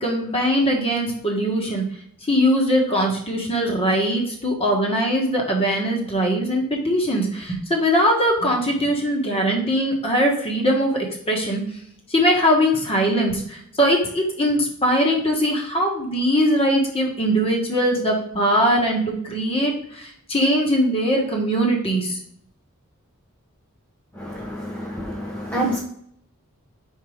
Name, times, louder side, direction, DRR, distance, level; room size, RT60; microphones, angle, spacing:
voice 1, 0.0-1.9 2.3-11.6 12.1-22.2, equal, 25° left, 0 dB, 1.6 m, -21 dB
voice 2, 24.1-25.8, right 1 dB, 10° left, -4 dB, 0.9 m, -28 dB
4.7 x 4.7 x 5.0 m, 0.69 s
head